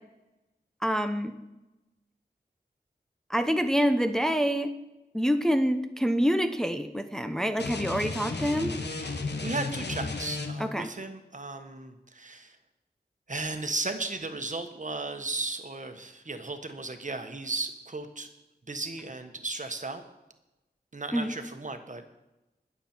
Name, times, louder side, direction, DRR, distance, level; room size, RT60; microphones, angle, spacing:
voice 1, 0.8-1.3 3.3-4.7 5.1-8.7 10.6-10.9 21.1-21.3, equal, 5° left, 8 dB, 0.8 m, -26 dB
sound 1, 7.6-10.8, left 3 dB, 80° left, 1.3 m, -34 dB
voice 2, 9.1-12.6 13.3-18.3 18.7-20.0 20.9-22.0, right 3 dB, 45° right, 7 dB, 1.3 m, -35 dB
20.5 x 7.3 x 4.5 m, 0.99 s
cardioid pair, 40°, 17 cm